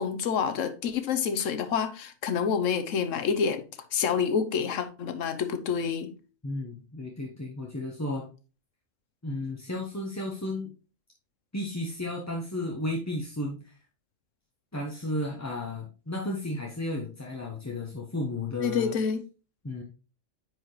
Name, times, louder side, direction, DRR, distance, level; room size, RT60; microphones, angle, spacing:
voice 1, 0.0-3.6 3.9-6.1 18.6-19.2, left 6 dB, 85° left, 1.2 m, -28 dB
voice 2, 6.4-8.3 9.2-10.7 11.5-13.8 14.7-18.9 19.6-19.8, left 1 dB, 15° left, 0.8 m, -33 dB
9.6 x 4.7 x 3.1 m
omnidirectional pair, 1.3 m